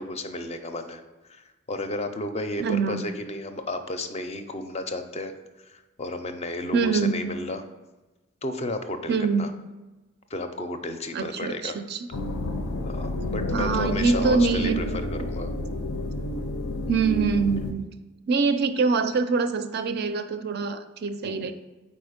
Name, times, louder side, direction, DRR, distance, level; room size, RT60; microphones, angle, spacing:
voice 1, 0.0-7.6 8.4-9.5 10.3-11.7 12.8-15.5 21.2-21.5, left 2 dB, 30° left, 7 dB, 0.4 m, -33 dB
voice 2, 2.6-3.0 6.7-7.4 9.1-9.7 11.1-12.1 13.5-14.8 16.9-17.9 18.3-21.5, right 4 dB, 50° right, 10 dB, 0.4 m, -24 dB
sound 1, 12.1-17.7, left 2 dB, 85° left, 0.5 m, -30 dB
4.6 x 4.3 x 5.0 m, 1.1 s
head